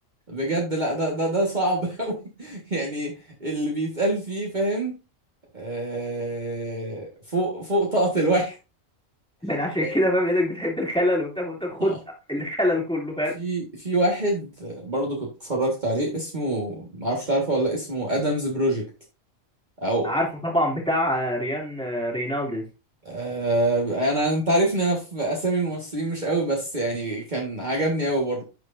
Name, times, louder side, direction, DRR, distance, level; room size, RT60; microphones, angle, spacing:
voice 1, 0.3-3.1 3.4-4.9 5.5-8.6 9.8-9.9 11.8-12.0 13.3-18.9 19.8-20.1 23.0-28.4, right 1 dB, 35° right, -2 dB, 1.8 m, -25 dB
voice 2, 9.4-12.0 12.3-13.3 20.0-22.6, left 1 dB, 5° left, -2 dB, 2.7 m, -25 dB
11.0 x 4.7 x 2.6 m, 0.28 s
omnidirectional pair, 1.3 m